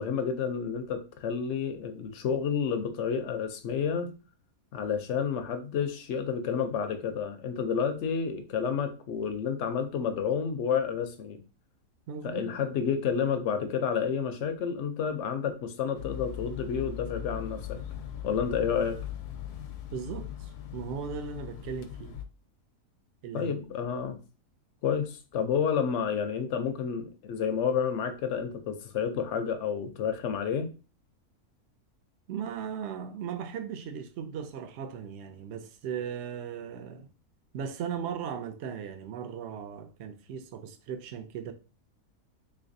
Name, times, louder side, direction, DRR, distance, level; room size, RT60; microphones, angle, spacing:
voice 1, 0.0-4.1 4.7-11.4 12.2-17.8 18.2-19.0 23.3-24.2 24.8-30.7, left 7 dB, 70° left, 0.7 m, -30 dB
voice 2, 12.1-12.5 19.9-22.2 23.2-23.5 32.3-37.1 37.5-41.5, right 7 dB, 65° right, 0.7 m, -37 dB
sound 1, 15.9-22.3, left 9 dB, 85° left, 1.1 m, -39 dB
3.6 x 3.2 x 2.6 m
omnidirectional pair, 1.6 m